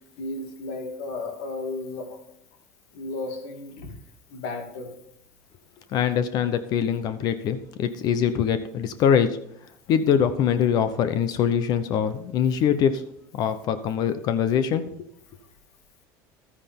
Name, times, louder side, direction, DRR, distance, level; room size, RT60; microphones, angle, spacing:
voice 1, 0.2-2.2 2.9-3.9 4.3-5.0, left 3 dB, 75° left, 5 dB, 2.4 m, -34 dB
voice 2, 5.9-9.3 9.9-13.0 13.3-14.8, left 8 dB, 55° left, 11 dB, 0.8 m, -23 dB
12.5 x 9.8 x 3.7 m, 0.74 s
supercardioid pair, 120°, 8 cm